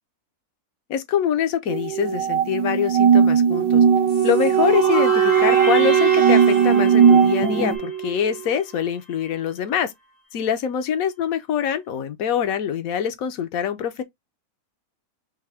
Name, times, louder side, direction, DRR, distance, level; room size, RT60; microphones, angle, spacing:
voice 1, 0.9-3.8 4.2-9.9 10.3-14.0, left 8 dB, 70° left, 1.1 m, -24 dB
sound 1, 1.7-7.8, right 7 dB, 85° right, 1.2 m, -19 dB
Wind instrument woodwind instrument, 3.5-8.5, right 9 dB, 65° right, 0.9 m, -21 dB
sound 2, 4.1-8.8, left 2 dB, 45° left, 0.5 m, -32 dB
3.6 x 3.0 x 3.3 m
omnidirectional pair, 1.6 m